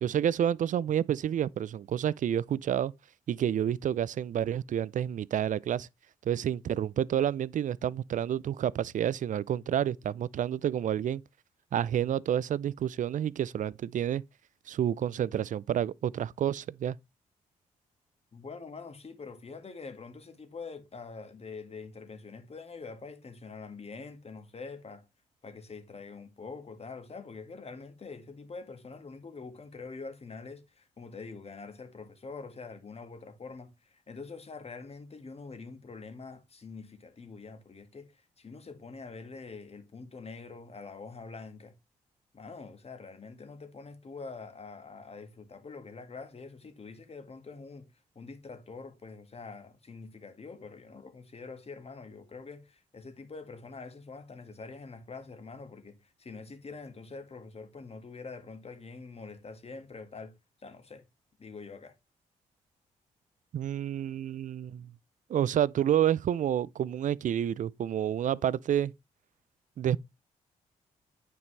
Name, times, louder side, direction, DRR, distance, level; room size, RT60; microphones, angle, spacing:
voice 1, 0.0-2.9 3.3-5.9 6.3-11.2 11.7-14.2 14.7-17.0 63.5-64.9 65.3-68.9 69.8-70.0, right 10 dB, 55° right, 0.5 m, -29 dB
voice 2, 18.3-25.1 25.4-41.7 42.3-47.9 48.2-60.3 60.6-61.0 61.4-61.9, left 4 dB, 40° left, 1.9 m, -45 dB
9.4 x 5.4 x 3.2 m
hypercardioid pair, 45°, 16 cm